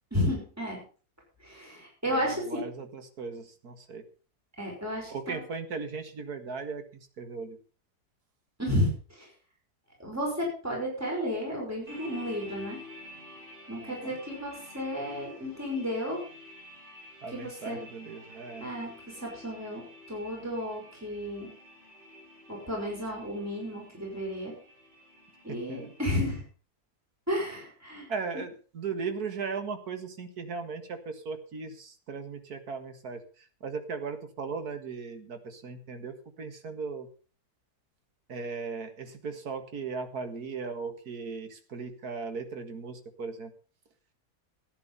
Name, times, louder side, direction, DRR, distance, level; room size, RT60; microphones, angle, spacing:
voice 1, 0.1-0.8 1.4-2.6 4.6-5.4 8.6-9.3 10.0-12.8 13.7-16.2 17.3-17.8 18.6-21.5 22.5-24.5 25.4-26.4 27.3-28.1, equal, 10° right, -2 dB, 5.4 m, -32 dB
voice 2, 2.1-4.0 5.1-7.6 13.8-14.2 17.2-18.7 25.7-25.9 28.1-37.1 38.3-43.5, right 5 dB, 70° right, 7 dB, 2.2 m, -37 dB
sound 1, 11.9-26.4, left 1 dB, 30° right, 5.6 m, -50 dB
14.0 x 9.8 x 5.5 m, 0.39 s
omnidirectional pair, 1.7 m